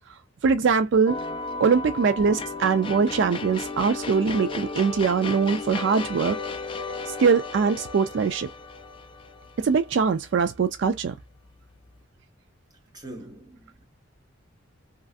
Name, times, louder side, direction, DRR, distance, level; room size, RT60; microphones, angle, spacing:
voice 1, 0.4-1.2 1.6-6.4 7.1-8.5 9.6-11.2, right 5 dB, 60° right, 0.3 m, -22 dB
sound 1, 1.1-10.3, left 3 dB, 25° left, 0.5 m, -34 dB
voice 2, 12.9-13.8, right 1 dB, 20° right, 0.9 m, -42 dB
3.1 x 2.5 x 2.5 m
head